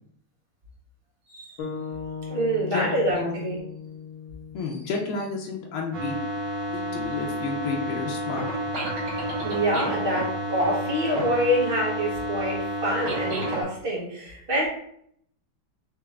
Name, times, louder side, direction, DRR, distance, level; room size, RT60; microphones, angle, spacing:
voice 1, 1.3-1.6 2.3-3.6 9.4-14.7, equal, 30° right, -5 dB, 1.3 m, -26 dB
sound 1, 1.6-5.8, left 6 dB, 65° left, 1.7 m, -38 dB
voice 2, 4.5-6.1 6.7-8.4, left 4 dB, 90° left, 0 dB, 1.6 m, -31 dB
sound 2, 5.9-13.6, equal, 60° right, 1.7 m, -30 dB
4.5 x 3.0 x 3.6 m, 0.68 s
omnidirectional pair, 2.3 m